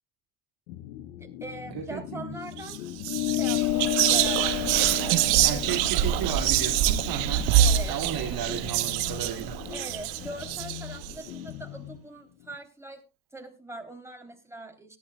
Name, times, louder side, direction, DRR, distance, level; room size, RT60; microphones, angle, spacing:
sound 1, 0.7-12.6, left 11 dB, 80° left, 1.1 m, -42 dB
voice 1, 1.1-2.8 3.2-4.8 5.0-5.6 6.0-6.1 7.6-8.6 9.7-13.0 13.3-15.0, right 2 dB, 5° right, 3.3 m, -42 dB
voice 2, 1.7-2.3 5.4-7.5 7.9-9.6, right 8 dB, 55° right, 2.4 m, -34 dB
Whispering, 2.6-2.8 3.0-11.1, right 12 dB, 75° right, 1.1 m, -25 dB
sound 2, 3.1-7.9, left 18 dB, 55° left, 0.5 m, -31 dB
18.5 x 11.5 x 2.3 m
hypercardioid pair, 65°, 42 cm